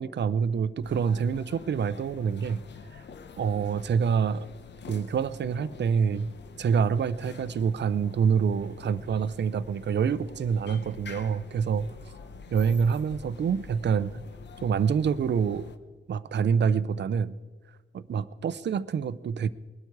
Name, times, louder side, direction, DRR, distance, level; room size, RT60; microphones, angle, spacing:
voice 1, 0.0-2.6 3.4-4.5 4.9-6.3 6.6-11.9 12.5-14.2 14.6-15.7 16.1-17.4 17.9-19.5, right 6 dB, 55° right, 16 dB, 0.6 m, -26 dB
sound 1, 0.8-15.8, left 5 dB, 55° left, 0.9 m, -47 dB
21.0 x 12.0 x 4.7 m, 1.4 s
wide cardioid pair, 145°, 21 cm